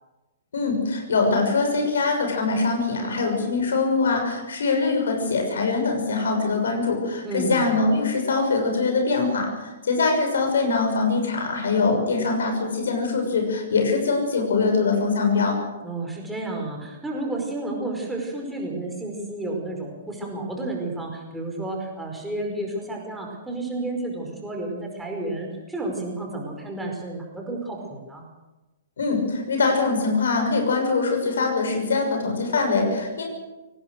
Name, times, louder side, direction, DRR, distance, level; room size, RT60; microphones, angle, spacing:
voice 1, 0.5-15.6 29.0-33.2, left 4 dB, 65° left, 4 dB, 6.2 m, -23 dB
voice 2, 7.2-7.7 15.8-28.2, right 2 dB, 5° right, 0 dB, 5.1 m, -31 dB
24.0 x 18.0 x 6.6 m, 1.1 s
figure-of-eight pair, 115°, 0 cm